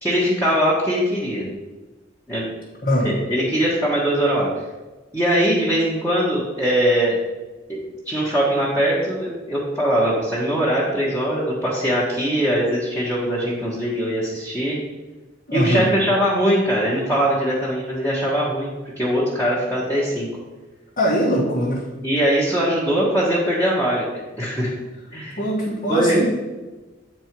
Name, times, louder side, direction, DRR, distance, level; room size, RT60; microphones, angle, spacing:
voice 1, 0.0-1.5 2.3-2.4 3.0-4.5 5.1-7.2 7.7-7.8 8.0-14.8 15.5-20.3 22.0-24.1 24.4-24.7 25.1-25.4 25.9-26.3, equal, 10° left, -8 dB, 1.3 m, -21 dB
voice 2, 2.8-3.1 15.5-15.9 21.0-21.8 25.4-26.3, equal, 45° left, -6 dB, 1.4 m, -21 dB
8.6 x 4.4 x 4.6 m, 1.2 s
head